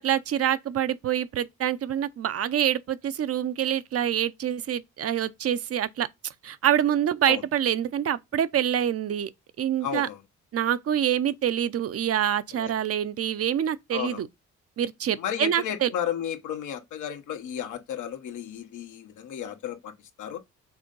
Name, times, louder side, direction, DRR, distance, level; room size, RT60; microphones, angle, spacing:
voice 1, 0.0-9.3 9.6-10.1 10.5-14.3 14.8-15.9, right 10 dB, 50° right, 0.7 m, -26 dB
voice 2, 9.8-10.2 12.5-12.7 13.9-14.2 15.2-19.9 20.2-20.4, left 9 dB, 80° left, 1.3 m, -33 dB
6.1 x 3.8 x 5.3 m
cardioid pair, 90°, 30 cm